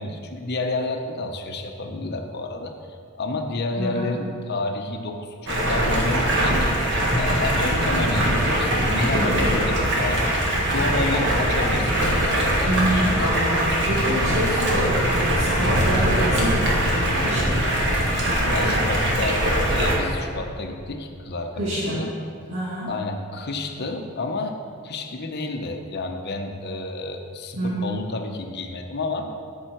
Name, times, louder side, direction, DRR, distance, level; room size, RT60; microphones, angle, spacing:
voice 1, 0.0-6.7 7.1-13.3 13.8-14.6 18.2-22.1 22.8-29.4, left 2 dB, 50° left, 4 dB, 0.8 m, -30 dB
voice 2, 3.8-4.1 9.1-9.5 12.6-17.8 21.6-22.1 22.5-22.9 27.6-27.9, right 1 dB, 85° right, -9 dB, 2.0 m, -27 dB
Stream, 5.5-20.0, right 1 dB, 60° right, 1.7 m, -22 dB
13.0 x 5.6 x 4.5 m, 2.4 s
head